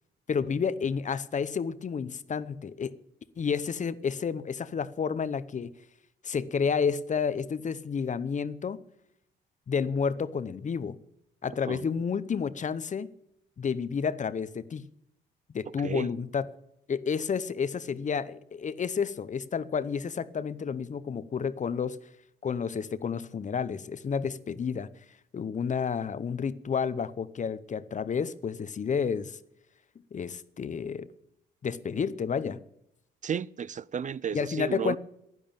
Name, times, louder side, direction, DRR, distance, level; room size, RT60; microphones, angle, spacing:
voice 1, 0.3-3.0 3.4-5.7 6.2-8.8 9.7-11.0 11.4-13.1 13.6-14.9 15.5-16.5 16.9-22.0 22.4-24.9 25.3-29.4 30.1-31.1 31.6-32.6 34.3-35.0, left 6 dB, 40° left, 0.8 m, -30 dB
voice 2, 33.2-35.0, right 8 dB, 40° right, 0.5 m, -33 dB
11.0 x 11.0 x 8.9 m
cardioid pair, 90°, 20 cm